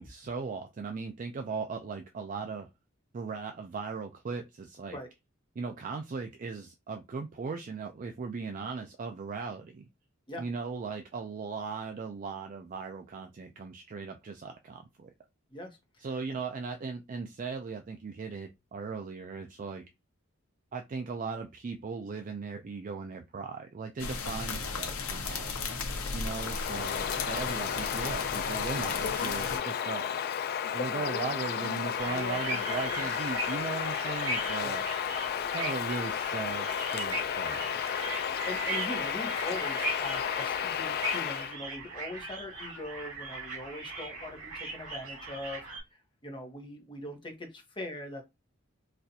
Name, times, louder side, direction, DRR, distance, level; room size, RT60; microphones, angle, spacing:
voice 1, 0.0-2.7 3.1-5.0 5.6-9.9 10.4-15.1 16.0-19.8 20.7-25.5 26.1-30.3 30.7-34.8 35.5-38.0, right 4 dB, 40° right, 0.3 m, -38 dB
sound 1, 24.0-29.6, left 4 dB, 85° left, 0.8 m, -35 dB
Bird vocalization bird call bird song, 26.3-41.6, left 8 dB, 45° left, 0.3 m, -33 dB
sound 2, 32.0-45.8, right 2 dB, 85° right, 2.1 m, -39 dB
voice 2, 38.5-45.6 46.2-48.2, left 1 dB, 25° left, 0.9 m, -41 dB
4.1 x 2.4 x 2.7 m
head